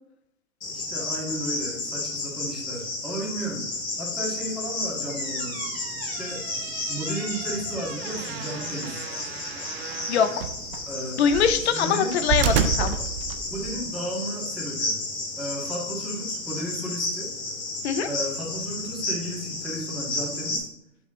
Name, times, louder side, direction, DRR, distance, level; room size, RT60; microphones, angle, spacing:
Cricket, 0.6-20.6, left 2 dB, 75° left, 2.1 m, -32 dB
voice 1, 0.7-3.6 4.0-5.6 6.2-6.4 6.9-9.1 10.9-11.2 11.6-12.1 12.4-12.6 13.4-15.0 15.4-17.3 18.0-20.7, right 1 dB, ahead, -5 dB, 1.8 m, -34 dB
sound 1, 4.9-13.8, right 7 dB, 45° right, 0.7 m, -32 dB
voice 2, 10.1-10.5 11.2-12.9 17.8-18.1, left 7 dB, 50° left, 11 dB, 0.7 m, -23 dB
6.7 x 5.4 x 3.6 m, 0.79 s
hypercardioid pair, 120°, 42 cm